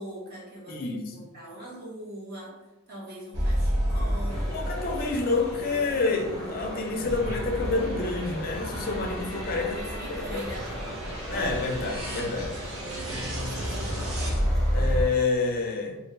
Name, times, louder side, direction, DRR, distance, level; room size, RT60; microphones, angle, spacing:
voice 1, 0.0-2.6 2.9-4.7 9.6-10.9 13.3-14.5, right 1 dB, 50° right, -5 dB, 1.2 m, -42 dB
voice 2, 0.7-1.1 4.5-9.8 10.3-10.4 11.3-12.5 14.7-16.0, left 3 dB, 45° left, 2 dB, 0.4 m, -28 dB
sound 1, 3.3-15.0, equal, 75° right, 0.9 m, -31 dB
sound 2, 4.3-15.2, equal, 5° left, 0.7 m, -39 dB
3.1 x 2.4 x 3.2 m, 1.1 s
head